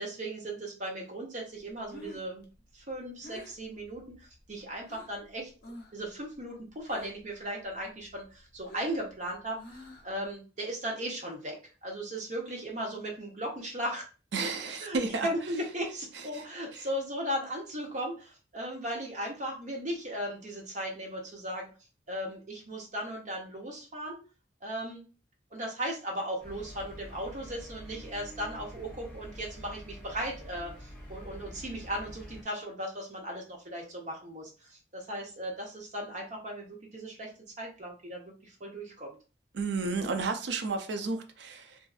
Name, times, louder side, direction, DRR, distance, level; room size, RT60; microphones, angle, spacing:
voice 1, 0.0-2.4 2.7-5.5 5.9-14.0 14.8-21.7 22.1-24.2 24.6-25.0 25.5-37.3 37.6-39.2, equal, 45° right, 0.8 m, -37 dB
Breathing, 1.6-5.2 5.6-6.1 6.3-7.3 7.7-10.3, left 2 dB, 55° left, 0.6 m, -49 dB
voice 2, 14.3-15.3 16.3-16.5 16.7-16.9 39.5-41.8, right 4 dB, 70° right, 0.4 m, -32 dB
sound 1, 26.4-32.4, equal, 10° left, 0.7 m, -46 dB
2.6 x 2.3 x 2.3 m
head